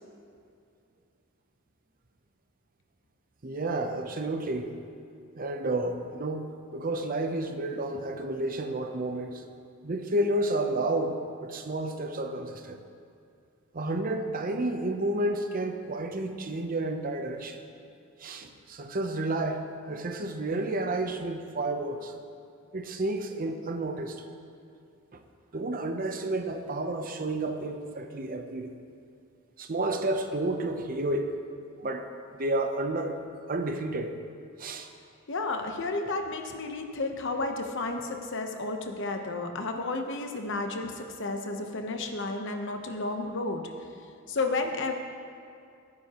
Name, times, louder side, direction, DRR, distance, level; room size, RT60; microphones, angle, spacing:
voice 1, 3.4-4.7 5.3-9.4 9.8-12.8 13.7-17.6 18.2-22.1 22.7-24.2 25.1-25.2 25.5-28.7 29.6-31.3 31.8-33.2 33.5-34.2 34.6-34.9, right 2 dB, 40° right, 6 dB, 0.7 m, -31 dB
voice 2, 35.3-43.6 44.3-44.9, left 3 dB, 60° left, 5 dB, 1.0 m, -32 dB
16.0 x 9.6 x 3.0 m, 2.5 s
head